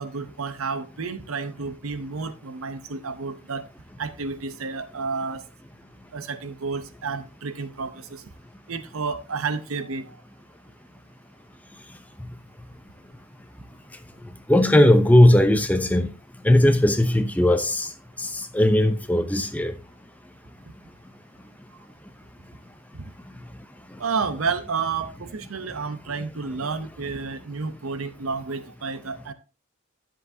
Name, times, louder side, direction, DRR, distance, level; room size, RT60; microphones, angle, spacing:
voice 1, 0.0-3.6 4.0-5.4 6.1-8.2 8.7-10.0 24.0-29.3, right 4 dB, 90° right, 0.8 m, -30 dB
voice 2, 14.5-16.1 16.4-17.9 18.5-19.7, left 1 dB, 5° left, 0.6 m, -17 dB
10.5 x 7.5 x 2.7 m
head